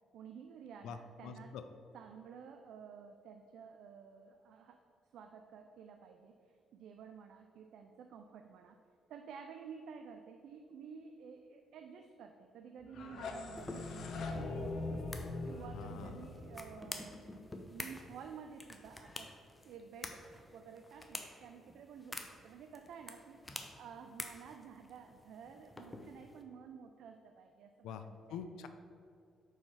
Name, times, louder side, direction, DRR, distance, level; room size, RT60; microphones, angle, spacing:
voice 1, 0.1-1.5 1.9-4.8 5.1-8.8 9.1-15.1 15.5-17.2 17.7-19.3 19.6-23.4 23.7-28.4, right 6 dB, 75° right, 5 dB, 0.4 m, -52 dB
voice 2, 0.8-1.6 15.7-16.4 27.8-28.0 28.3-28.7, left 7 dB, 85° left, 9 dB, 0.4 m, -45 dB
sound 1, 12.8-17.7, left 2 dB, 70° left, 0.8 m, -42 dB
sound 2, 13.6-26.4, left 2 dB, 15° left, 0.6 m, -49 dB
4.7 x 4.4 x 5.5 m, 2.4 s
cardioid pair, 90°, 0 cm